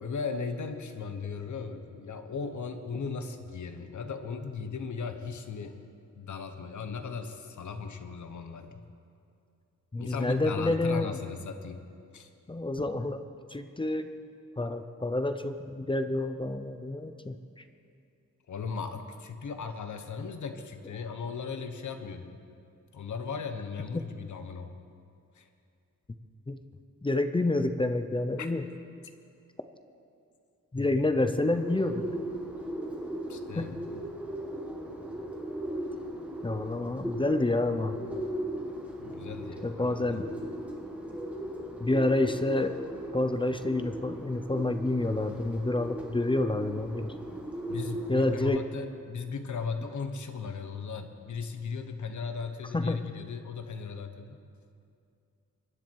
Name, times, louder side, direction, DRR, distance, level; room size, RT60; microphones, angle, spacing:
voice 1, 0.0-5.8 6.2-8.9 10.0-11.8 12.1-12.3 18.5-22.4 22.9-24.8 25.3-25.5 28.4-28.5 33.3-33.8 39.0-40.2 47.7-54.4, left 5 dB, 65° left, 7 dB, 1.1 m, -37 dB
voice 2, 9.9-11.2 12.5-13.2 13.5-14.1 14.6-17.4 26.5-26.6 27.0-28.6 30.7-32.1 33.6-33.7 36.4-38.0 39.6-40.2 41.8-42.7 43.1-47.1 48.1-48.6 52.7-53.0, left 2 dB, 15° left, 8 dB, 0.5 m, -28 dB
Bird, 31.4-48.4, right 1 dB, 5° right, 1.7 m, -38 dB
24.0 x 10.5 x 4.6 m, 2.5 s
wide cardioid pair, 165°, 32 cm